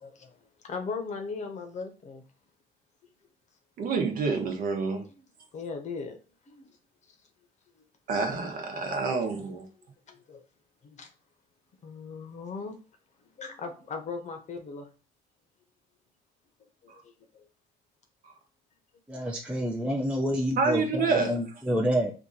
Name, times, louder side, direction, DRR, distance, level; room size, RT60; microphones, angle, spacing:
voice 1, 0.0-0.3 0.6-2.2 4.9-5.0 5.5-6.2 6.5-6.8 8.8-9.0 9.6-9.7 10.1-10.4 10.8-11.1 11.8-12.8 13.4-14.9 16.8-17.4 21.7-21.8, left 4 dB, 45° left, 5 dB, 0.9 m, -38 dB
voice 2, 3.8-5.0 8.1-9.7 20.6-21.3, right 4 dB, 55° right, 3 dB, 1.0 m, -27 dB
voice 3, 19.1-22.1, equal, 5° right, -1 dB, 0.5 m, -28 dB
2.9 x 2.5 x 3.8 m, 0.35 s
cardioid pair, 110°, 17 cm